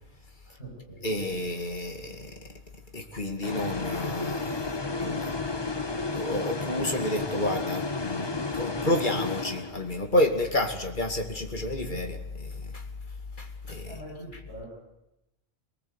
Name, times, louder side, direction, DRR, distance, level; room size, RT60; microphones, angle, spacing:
voice 1, 0.4-1.2 13.9-14.7, right 1 dB, 75° left, -5 dB, 7.6 m, -43 dB
voice 2, 1.0-2.3 2.9-5.3 6.1-8.3 8.5-12.8 13.4-13.9, left 1 dB, 45° left, 4 dB, 2.5 m, -30 dB
sound 1, 3.4-10.1, left 3 dB, 25° left, 1.1 m, -32 dB
23.5 x 19.5 x 8.1 m, 0.89 s
omnidirectional pair, 1.2 m